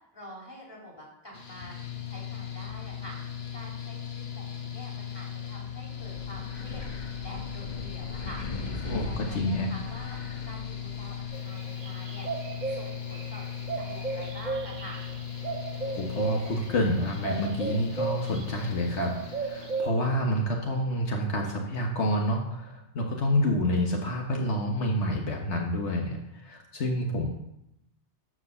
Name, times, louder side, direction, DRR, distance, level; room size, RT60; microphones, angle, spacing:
voice 1, 0.1-1.8 2.1-3.2 3.5-8.4 8.8-10.2 10.4-12.3 12.7-13.4 13.8-15.0, equal, 20° left, -3 dB, 3.4 m, -47 dB
Mechanical fan, 1.3-19.8, left 8 dB, 60° left, 1.5 m, -38 dB
Wind, 6.0-11.3, left 2 dB, 40° left, 1.4 m, -40 dB
voice 2, 8.9-9.7 16.0-27.3, equal, 75° left, 1 dB, 1.5 m, -28 dB
sound 1, 11.3-18.7 18.9-19.9, right 4 dB, 45° right, 0.8 m, -35 dB
12.5 x 5.0 x 6.8 m, 0.84 s
omnidirectional pair, 1.2 m